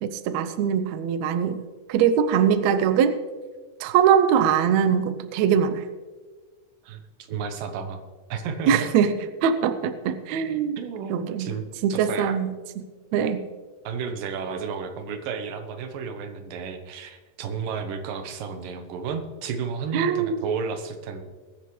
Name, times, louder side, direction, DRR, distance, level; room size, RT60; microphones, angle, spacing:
voice 1, 0.0-3.1 3.8-5.8 8.7-10.8 11.1-11.5 11.8-12.8 13.1-13.4 19.9-20.4, right 8 dB, 90° right, 9 dB, 1.5 m, -22 dB
voice 2, 7.3-8.0 8.3-8.9 10.8-11.6 11.9-12.4 13.8-21.2, right 6 dB, 70° right, 7 dB, 2.6 m, -32 dB
21.5 x 10.0 x 3.2 m, 1.4 s
omnidirectional pair, 4.3 m